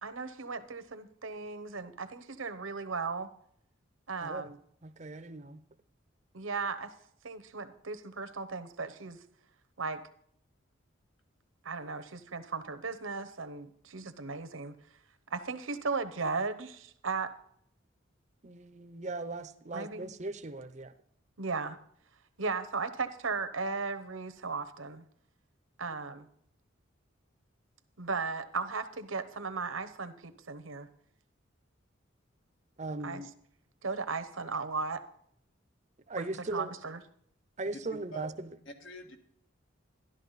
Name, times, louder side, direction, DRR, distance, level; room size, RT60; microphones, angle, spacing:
voice 1, 0.0-3.3 4.1-4.6 6.3-6.9 7.2-9.2 9.8-10.0 11.6-14.8 15.3-17.3 19.7-20.1 21.4-21.8 22.4-25.0 25.8-26.3 28.0-30.9 33.0-33.2 33.8-35.0 36.2-36.3 36.5-37.0, right 4 dB, 80° right, 11 dB, 1.0 m, -36 dB
voice 2, 4.8-5.6 18.4-20.9 32.8-33.3 36.1-36.7 37.6-38.5, right 2 dB, 35° right, 12 dB, 0.6 m, -39 dB
voice 3, 37.7-38.3 38.6-39.2, equal, 70° left, 4 dB, 1.7 m, -45 dB
12.5 x 12.0 x 4.1 m, 0.68 s
head